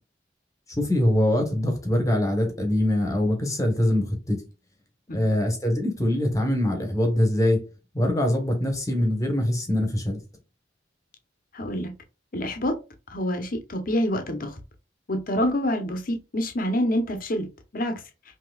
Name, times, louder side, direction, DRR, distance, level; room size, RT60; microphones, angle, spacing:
voice 1, 0.7-4.4 5.1-7.6 7.9-10.2, left 1 dB, 15° left, 1.1 m, -23 dB
voice 2, 11.5-11.9 12.3-12.8 13.1-14.5 15.1-17.5 17.7-18.0, equal, 50° left, 0.9 m, -26 dB
5.7 x 2.9 x 2.3 m
head